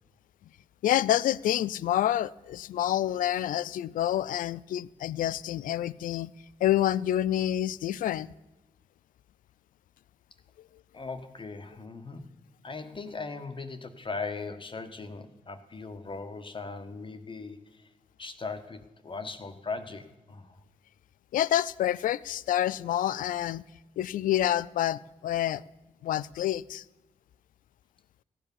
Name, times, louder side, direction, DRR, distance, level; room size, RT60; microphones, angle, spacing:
voice 1, 0.8-6.3 6.6-8.3 21.3-23.6 24.0-25.6 26.0-26.8, left 12 dB, 80° left, 0.4 m, -28 dB
voice 2, 10.9-12.2 12.6-17.9 18.2-20.6, left 4 dB, 35° left, 1.4 m, -39 dB
15.0 x 8.4 x 7.2 m
cardioid pair, 55°, 14 cm